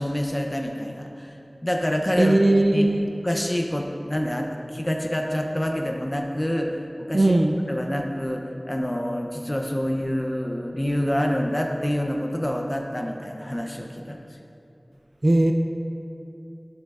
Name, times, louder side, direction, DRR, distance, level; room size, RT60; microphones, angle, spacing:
voice 1, 0.0-1.3 1.6-2.9 3.2-7.4 7.7-14.2, equal, 25° left, 2 dB, 0.6 m, -27 dB
voice 2, 2.2-3.1 7.1-7.5 15.2-15.5, right 1 dB, 55° right, 3 dB, 0.4 m, -18 dB
11.5 x 6.3 x 2.4 m, 2.7 s
wide cardioid pair, 45°, 0 cm